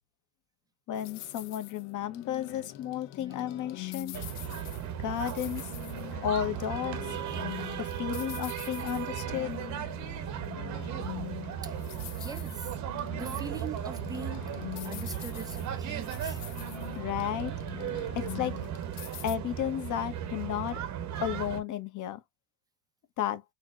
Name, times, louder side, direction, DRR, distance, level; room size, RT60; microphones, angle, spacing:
sound 1, 0.9-19.4, left 16 dB, 75° left, 0.7 m, -44 dB
voice 1, 0.9-4.2 5.0-5.7 6.2-7.2 7.8-9.6 16.9-17.5 18.1-18.6 19.2-20.8 21.2-22.2 23.2-23.4, left 10 dB, 35° left, 0.9 m, -33 dB
sound 2, 4.1-21.6, right 9 dB, 35° right, 0.7 m, -36 dB
voice 2, 11.6-12.7 13.1-16.4, right 5 dB, 10° right, 0.4 m, -42 dB
4.2 x 2.1 x 2.4 m
supercardioid pair, 125°, 50 cm